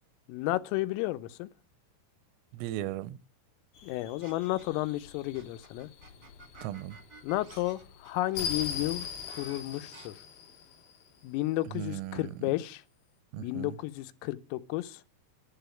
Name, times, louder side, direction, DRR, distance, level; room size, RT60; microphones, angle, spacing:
voice 1, 0.3-1.5 3.8-5.9 7.2-10.2 11.2-12.8 13.4-15.0, left 17 dB, 90° left, 3.4 m, -32 dB
voice 2, 2.5-3.2 6.6-7.0 11.7-12.3 13.3-13.7, right 13 dB, 85° right, 3.3 m, -37 dB
sound 1, 3.7-11.2, left 6 dB, 55° left, 2.8 m, -41 dB
sound 2, 4.2-4.9 5.3-10.1, right 4 dB, 55° right, 1.2 m, -53 dB
11.0 x 7.0 x 8.9 m
omnidirectional pair, 5.8 m